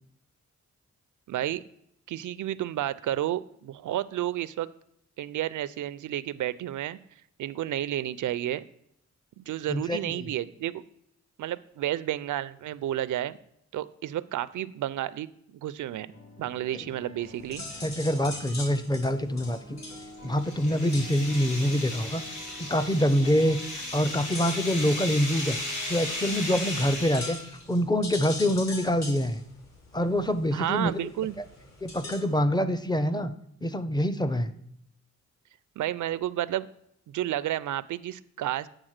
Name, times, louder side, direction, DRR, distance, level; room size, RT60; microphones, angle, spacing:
voice 1, 1.3-1.6 2.1-4.7 5.2-7.0 7.4-8.6 9.4-10.8 11.4-13.4 13.7-15.3 15.6-16.1 16.4-17.6 30.5-31.4 35.8-36.7 37.1-38.7, right 12 dB, 85° right, 17 dB, 0.5 m, -31 dB
voice 2, 9.7-10.3 17.8-19.8 20.2-22.2 22.6-25.6 25.9-27.4 27.7-29.4 29.9-30.9 31.8-33.3 33.6-34.5, equal, 15° left, 12 dB, 0.5 m, -25 dB
sound 1, 16.1-18.5 19.4-27.0, equal, 45° left, 3.1 m, -48 dB
sound 2, 17.2-32.4, left 2 dB, 60° left, 2.6 m, -44 dB
sound 3, 20.1-27.6, left 1 dB, 85° left, 3.6 m, -36 dB
8.9 x 3.8 x 6.4 m, 0.73 s
wide cardioid pair, 115°, 30 cm